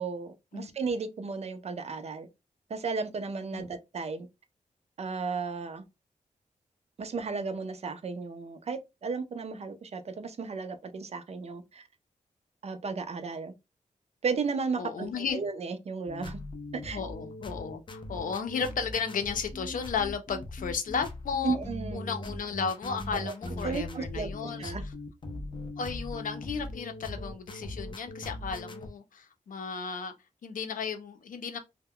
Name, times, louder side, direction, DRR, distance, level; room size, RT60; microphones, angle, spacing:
voice 1, 0.0-2.3 2.7-4.3 5.0-5.8 7.0-11.8 12.6-13.5 14.2-16.4 16.7-17.0 21.4-22.1 23.1-23.3 23.6-24.8, right 4 dB, 50° right, 0.5 m, -34 dB
voice 2, 14.8-15.4 16.9-21.6 21.9-24.7 25.8-30.1 30.4-31.6, left 6 dB, 80° left, 0.6 m, -34 dB
sound 1, 16.1-28.9, left 1 dB, 35° left, 0.5 m, -40 dB
2.1 x 2.1 x 3.6 m
wide cardioid pair, 125°, 14 cm